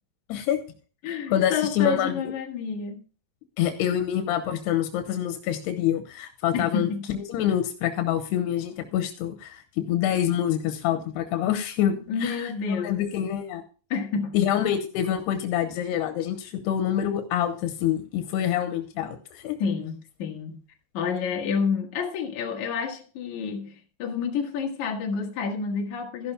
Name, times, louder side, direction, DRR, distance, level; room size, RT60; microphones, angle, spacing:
voice 1, 0.3-0.6 1.3-2.3 3.6-13.6 14.3-19.6, left 10 dB, 85° left, 2.9 m, -26 dB
voice 2, 1.0-3.0 6.5-7.0 12.1-13.0 13.9-14.4 19.6-20.6 20.9-26.3, left 6 dB, 55° left, 2.4 m, -29 dB
14.5 x 11.5 x 2.2 m
omnidirectional pair, 4.7 m